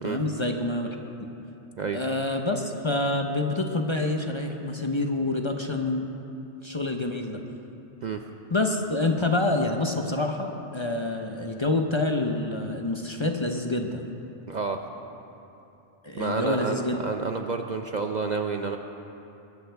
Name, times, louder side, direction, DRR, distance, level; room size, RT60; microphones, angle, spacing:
voice 1, 0.0-1.0 1.9-6.0 6.6-7.4 8.5-14.0 16.0-17.0, left 2 dB, 30° left, 3 dB, 0.8 m, -27 dB
voice 2, 14.5-14.8 16.2-18.8, right 4 dB, 50° right, 4 dB, 0.6 m, -29 dB
22.0 x 14.5 x 3.5 m, 2.9 s
omnidirectional pair, 1.2 m